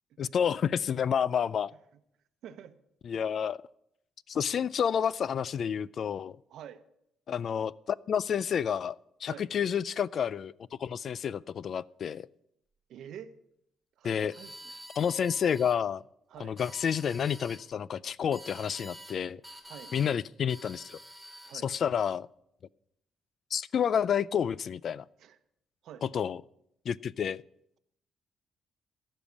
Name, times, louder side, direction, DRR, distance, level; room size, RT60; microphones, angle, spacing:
voice 1, 0.2-1.7 3.0-3.6 4.3-6.4 7.3-10.5 10.8-12.3 14.0-14.3 15.0-16.0 16.4-19.4 19.9-21.0 21.6-22.3 23.5-25.0 26.0-26.4 26.9-27.4, left 8 dB, 55° left, 21 dB, 0.3 m, -29 dB
voice 2, 2.4-2.8 3.1-3.2 6.5-6.8 9.3-9.5 12.9-13.3 14.0-14.7 16.3-16.6 19.6-19.9 21.5-21.7 25.2-25.4 25.8-26.0, right 9 dB, 75° right, 12 dB, 0.9 m, -47 dB
sound 1, 14.3-15.8 16.4-17.6 18.3-19.2 19.4-20.1 20.5-21.6, equal, 5° left, 2.5 m, -48 dB
15.0 x 5.5 x 8.4 m, 0.77 s
cardioid pair, 90°, 0 cm